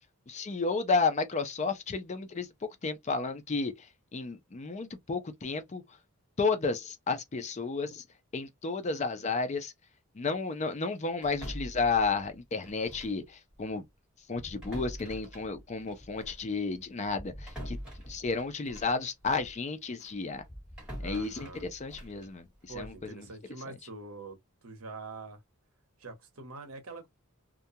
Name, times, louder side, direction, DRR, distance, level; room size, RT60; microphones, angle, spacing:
voice 1, 0.3-3.7 4.1-5.8 6.4-8.0 8.3-9.7 10.2-13.8 14.3-17.8 18.1-20.4 21.0-22.4 22.8-23.3, left 4 dB, 30° left, 0.4 m, -32 dB
sound 1, 11.2-13.3 13.5-13.7 14.3-19.6 20.0-23.1, equal, 5° right, 1.4 m, -45 dB
voice 2, 21.0-21.6 22.7-25.4 26.0-27.1, right 3 dB, 70° right, 0.9 m, -44 dB
2.4 x 2.2 x 2.7 m
head